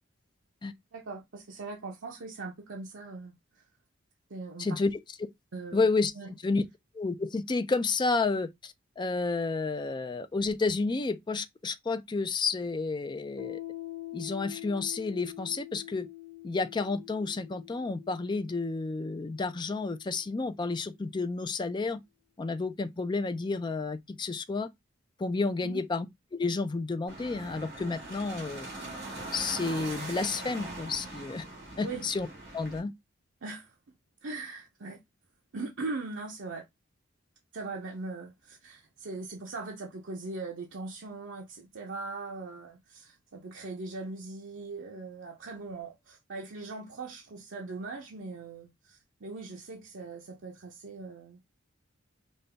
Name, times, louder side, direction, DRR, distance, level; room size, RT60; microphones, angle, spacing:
voice 1, 0.9-3.6 4.3-4.8 5.5-5.9 6.2-6.3 25.6-25.8 31.8-32.1 33.4-33.8 34.2-35.0 35.5-36.6 37.5-51.4, right 3 dB, 75° right, 0.7 m, -40 dB
voice 2, 4.6-4.9 5.7-6.1 6.4-6.6 6.9-13.6 14.1-16.1 16.4-22.0 22.4-24.7 25.2-26.1 26.3-28.7 29.3-31.4 31.8-32.3 32.5-32.9, left 3 dB, 25° left, 0.4 m, -30 dB
Piano, 13.4-20.6, left 16 dB, 75° left, 1.1 m, -45 dB
sound 1, 27.1-32.8, right 2 dB, 60° right, 2.3 m, -41 dB
5.2 x 2.3 x 3.3 m
head